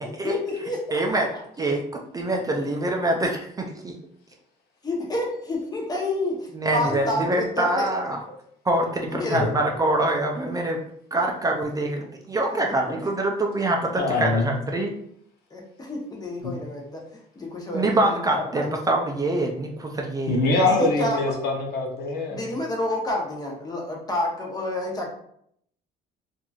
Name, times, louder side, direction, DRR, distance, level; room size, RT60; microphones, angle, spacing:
voice 1, 0.0-1.2 4.8-7.9 9.1-9.4 12.0-12.1 12.5-13.1 14.3-14.4 15.5-17.0 17.4-18.8 20.6-21.2 22.3-25.1, left 2 dB, 20° left, -1 dB, 0.8 m, -29 dB
voice 2, 0.9-1.3 1.6-1.8 2.1-4.0 6.5-8.2 8.6-10.8 11.1-14.9 17.7-20.4, right 2 dB, 20° right, 1 dB, 0.4 m, -25 dB
voice 3, 14.0-14.5 16.4-16.6 20.3-22.5, left 2 dB, 70° left, 1 dB, 0.7 m, -23 dB
2.9 x 2.5 x 2.3 m, 0.69 s
cardioid pair, 110°, 17 cm